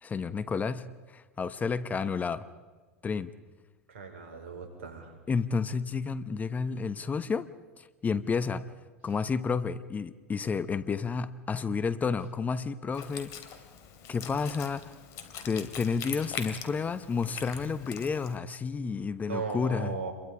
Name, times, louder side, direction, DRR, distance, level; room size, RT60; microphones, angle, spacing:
voice 1, 0.0-2.5 3.0-3.3 5.3-7.5 7.8-8.7 9.0-13.3 14.1-14.9 15.4-20.0, left 5 dB, 20° left, 14 dB, 1.1 m, -31 dB
voice 2, 3.9-5.2 9.1-9.2 19.3-20.1, right 5 dB, 75° right, 5 dB, 5.2 m, -37 dB
Wind instrument woodwind instrument, 12.9-18.4, left 7 dB, 50° left, 3.2 m, -42 dB
29.5 x 23.0 x 5.1 m, 1.4 s
hypercardioid pair, 90°, 7 cm